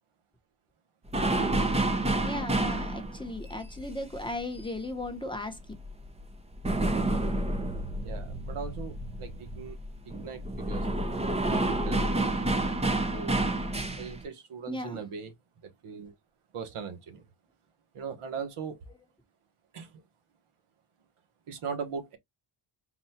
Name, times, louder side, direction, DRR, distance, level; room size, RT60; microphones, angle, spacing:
sound 1, 1.1-5.4 5.7-14.2, right 2 dB, 15° right, 0.5 m, -29 dB
voice 1, 2.2-5.6 14.7-15.0, left 1 dB, 10° left, 0.8 m, -36 dB
voice 2, 8.0-9.8 10.0-13.3 14.0-15.3 15.6-16.1 16.5-17.3 17.9-18.8 19.7-20.0 21.5-22.2, right 6 dB, 80° right, 1.2 m, -40 dB
4.1 x 2.3 x 4.0 m
wide cardioid pair, 165°, 50 cm